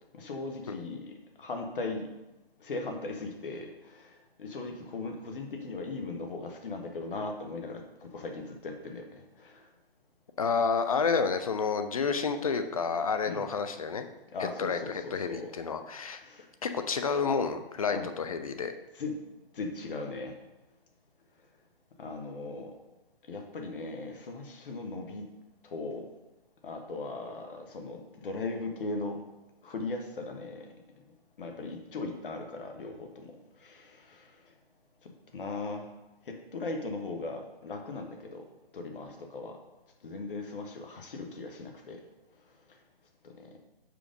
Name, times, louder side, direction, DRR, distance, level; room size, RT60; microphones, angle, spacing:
voice 1, 0.1-2.1 2.6-9.7 13.3-13.5 14.3-15.5 16.2-16.5 17.9-18.1 18.9-19.2 19.5-20.4 22.0-22.7 23.3-25.3 25.6-26.1 26.6-29.2 29.6-30.7 31.4-34.4 35.0-35.9 36.2-38.4 38.7-39.6 40.0-42.0 43.2-43.5, left 3 dB, 60° left, 3 dB, 1.3 m, -38 dB
voice 2, 10.4-14.1 14.6-16.2 16.6-18.7, left 5 dB, 35° left, 8 dB, 0.4 m, -29 dB
5.0 x 5.0 x 5.1 m, 1.0 s
hypercardioid pair, 155°, 30 cm